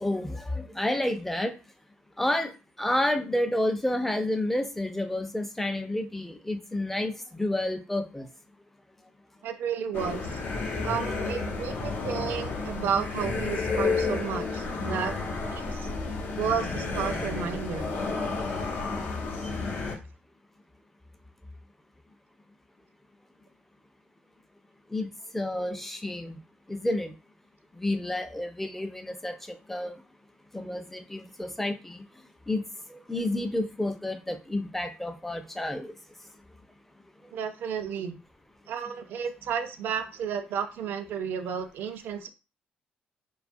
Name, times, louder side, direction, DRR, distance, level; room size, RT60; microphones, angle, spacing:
voice 1, 0.0-1.5 2.2-2.5 2.8-8.3 24.9-26.4 26.7-27.1 27.8-29.9 30.5-32.0 32.5-32.6 32.9-35.9, left 1 dB, 5° left, 6 dB, 0.4 m, -30 dB
voice 2, 9.4-10.4 10.8-15.2 15.5-15.9 16.4-17.9 37.3-38.2 38.7-42.3, right 7 dB, 70° right, 9 dB, 0.4 m, -32 dB
sound 1, 9.9-20.0, left 4 dB, 70° left, 0.7 m, -31 dB
2.5 x 2.3 x 2.5 m, 0.31 s
cardioid pair, 90°, 4 cm